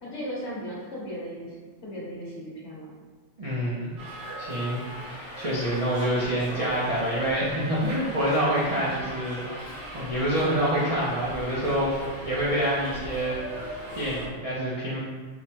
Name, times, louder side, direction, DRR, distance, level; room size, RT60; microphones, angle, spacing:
voice 1, 0.0-1.6 1.8-2.9, equal, 60° left, -5 dB, 1.2 m, -36 dB
voice 2, 3.4-3.9 4.4-4.8 5.1-13.4 13.9-15.0, right 1 dB, 45° right, -9 dB, 0.5 m, -27 dB
Subway metro underground, 4.0-14.3, equal, 85° right, 1.3 m, -38 dB
4.7 x 2.1 x 2.8 m, 1.5 s
omnidirectional pair, 1.3 m